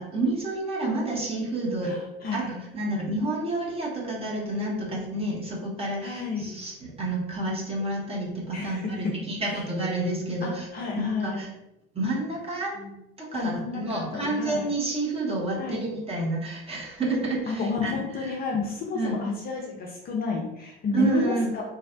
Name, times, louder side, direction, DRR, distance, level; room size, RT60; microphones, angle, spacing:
voice 1, 0.0-2.0 2.3-10.6 11.0-11.5 11.9-12.8 13.2-17.9 18.2-18.3 18.9-19.2 20.9-21.5, right 2 dB, 20° right, -3 dB, 0.9 m, -29 dB
voice 2, 1.8-2.6 6.0-6.6 8.5-9.1 9.5-9.6 10.4-11.5 12.7-12.9 13.3-14.7 15.5-15.8 17.5-21.6, left 4 dB, 30° left, -1 dB, 0.5 m, -31 dB
2.6 x 2.0 x 2.5 m, 0.86 s
figure-of-eight pair, 65°, 30 cm